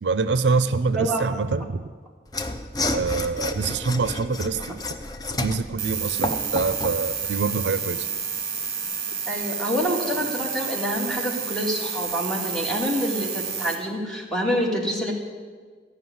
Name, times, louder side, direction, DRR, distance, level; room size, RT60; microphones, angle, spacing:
voice 1, 0.0-1.8 2.9-4.8 5.3-8.1, right 4 dB, 75° right, 13 dB, 0.5 m, -25 dB
voice 2, 0.9-1.3 9.3-15.1, equal, 5° left, -3 dB, 2.1 m, -27 dB
Mechanisms / Sawing, 2.3-7.0, left 2 dB, 20° left, 0.6 m, -30 dB
sound 1, 5.8-13.8, right 6 dB, 50° right, 1.5 m, -30 dB
14.5 x 5.9 x 9.4 m, 1.5 s
head